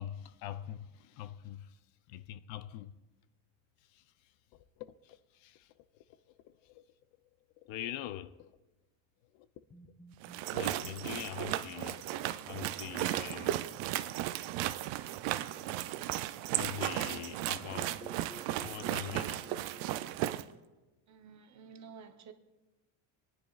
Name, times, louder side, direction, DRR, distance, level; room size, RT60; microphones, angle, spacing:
voice 1, 0.0-1.8 2.1-2.9 3.9-4.0 4.5-5.7 6.1-6.8 7.6-8.6 9.3-9.5 10.5-12.1 12.5-13.6 16.6-19.4, left 12 dB, 70° left, 0.6 m, -44 dB
sound 1, 9.7-13.7 17.7-20.1, equal, 15° left, 0.6 m, -56 dB
sound 2, 10.2-20.4, right 14 dB, 70° right, 0.6 m, -35 dB
voice 2, 21.1-22.3, right 6 dB, 35° right, 0.8 m, -51 dB
26.5 x 9.9 x 2.4 m
cardioid pair, 130°, 47 cm